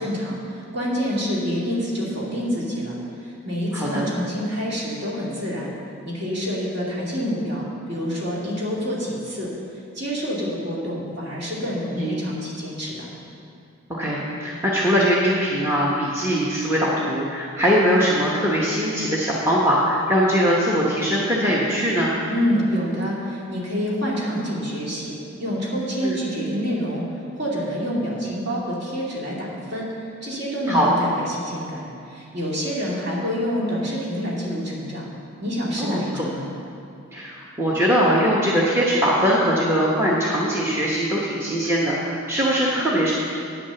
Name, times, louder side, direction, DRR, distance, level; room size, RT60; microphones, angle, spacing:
voice 1, 0.0-3.0 3.2-5.7 6.0-9.5 9.9-13.1 22.3-27.0 27.4-29.9 30.2-35.1 35.4-36.5, equal, 50° right, -5 dB, 2.2 m, -27 dB
voice 2, 3.7-4.0 12.0-12.2 14.0-22.1 26.0-26.2 30.7-30.9 35.8-36.3 37.1-43.1, equal, 10° right, -5 dB, 0.9 m, -21 dB
9.2 x 6.1 x 6.9 m, 2.6 s
head